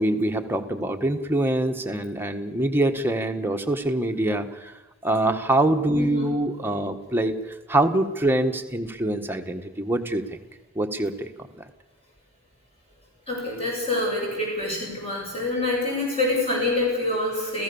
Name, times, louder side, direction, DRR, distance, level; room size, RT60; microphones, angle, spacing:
voice 1, 0.0-4.7 5.0-7.3 7.7-10.2 10.7-11.3, right 1 dB, 10° right, 5 dB, 1.4 m, -24 dB
voice 2, 6.0-6.3 13.3-17.6, left 2 dB, 30° left, -3 dB, 7.9 m, -26 dB
29.5 x 15.5 x 7.1 m, 1.1 s
head